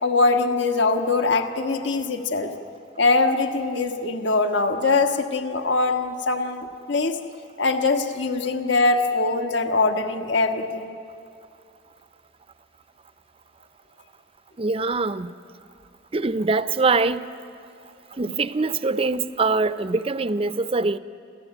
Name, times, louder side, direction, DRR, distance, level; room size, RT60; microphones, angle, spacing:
voice 1, 0.0-2.5 3.0-7.2 7.6-11.0, left 3 dB, 65° left, 5 dB, 1.4 m, -22 dB
voice 2, 14.6-15.3 16.1-17.3 18.2-21.0, right 3 dB, 30° right, 13 dB, 0.5 m, -23 dB
28.5 x 15.0 x 9.1 m, 2.4 s
head